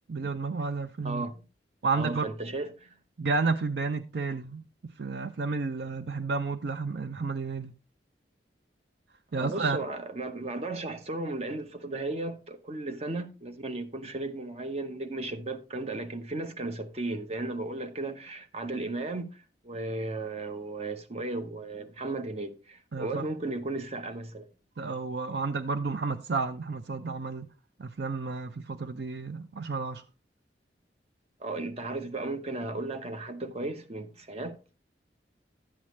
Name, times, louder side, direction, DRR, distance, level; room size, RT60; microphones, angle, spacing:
voice 1, 0.1-1.2 1.8-2.3 3.2-7.7 9.3-9.8 22.9-23.3 24.8-27.5 27.8-30.0, right 4 dB, 65° right, 0.5 m, -31 dB
voice 2, 1.0-1.4 1.9-3.0 9.3-24.5 24.9-25.0 31.4-34.6, right 2 dB, 35° right, 0.9 m, -35 dB
11.5 x 8.6 x 3.1 m
head